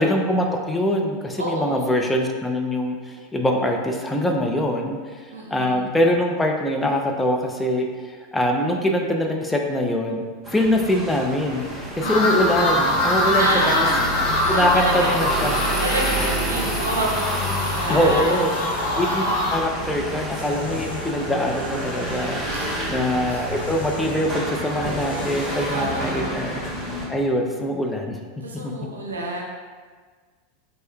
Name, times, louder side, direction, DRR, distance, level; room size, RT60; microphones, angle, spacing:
voice 1, 0.0-10.2 10.5-13.7 14.5-15.6 17.9-19.2 19.5-26.6 27.1-28.2 28.6-28.7, left 1 dB, 10° left, 1 dB, 0.5 m, -23 dB
voice 2, 1.4-1.9 5.3-5.8 12.0-12.3 13.3-15.2 15.5-18.4 22.4-22.8 23.3-23.4 25.7-26.4 28.4-29.4, right 2 dB, 85° right, -1 dB, 0.6 m, -28 dB
sound 1, 10.4-27.1, right 1 dB, 15° right, 1.0 m, -29 dB
sound 2, 12.0-19.6, left 1 dB, 60° left, 0.7 m, -24 dB
sound 3, 17.4-19.3 20.3-22.4 22.8-25.7, left 3 dB, 80° left, 0.4 m, -40 dB
4.4 x 3.2 x 2.3 m, 1.5 s
figure-of-eight pair, 85°, 0 cm